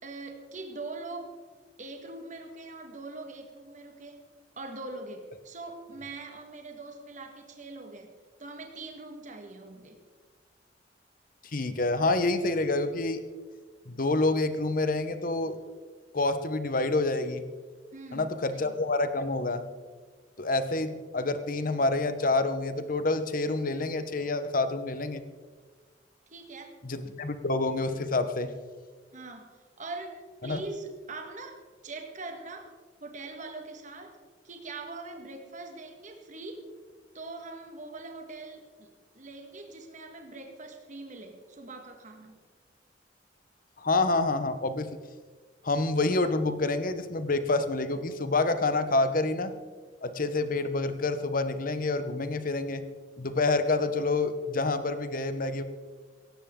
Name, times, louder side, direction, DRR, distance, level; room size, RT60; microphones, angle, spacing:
voice 1, 0.0-1.3 1.8-4.3 4.6-8.1 8.4-10.0 17.9-18.7 26.3-26.8 29.1-32.7 33.0-34.2 34.4-36.6 37.1-38.9 39.2-42.4, right 3 dB, 45° right, 4 dB, 1.7 m, -42 dB
voice 2, 11.5-13.2 13.9-15.6 16.1-17.4 18.1-19.6 20.4-25.2 26.8-28.5 30.4-30.6 43.8-44.9 45.6-49.5 50.0-52.9 53.2-55.6, left 2 dB, 50° left, 10 dB, 1.1 m, -27 dB
18.0 x 14.5 x 3.8 m, 1.4 s
head